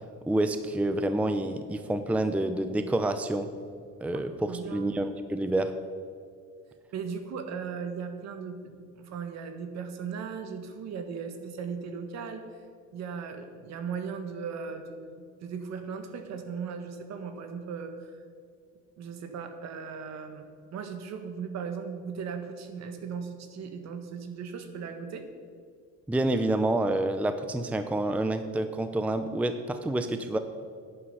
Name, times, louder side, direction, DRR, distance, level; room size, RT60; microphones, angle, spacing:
voice 1, 0.3-3.5 4.0-5.7 26.1-30.4, right 1 dB, 5° right, 9 dB, 0.5 m, -28 dB
voice 2, 4.5-5.0 6.9-12.5 12.9-18.1 19.0-25.3, right 6 dB, 60° right, 7 dB, 1.6 m, -37 dB
11.0 x 10.0 x 5.5 m, 2.2 s
cardioid pair, 125°, 31 cm